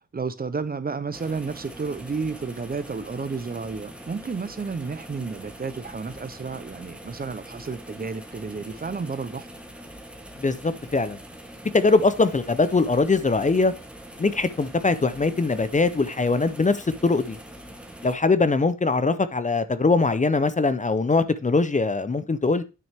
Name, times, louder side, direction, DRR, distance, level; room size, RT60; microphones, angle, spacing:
voice 1, 0.1-9.5, right 4 dB, 30° right, 0.6 m, -31 dB
sound 1, 1.1-18.2, right 1 dB, 5° right, 1.0 m, -43 dB
voice 2, 10.4-11.2 11.7-13.7 14.2-17.4 18.0-22.6, left 3 dB, 25° left, 0.5 m, -22 dB
9.2 x 6.1 x 3.4 m
wide cardioid pair, 165°, 31 cm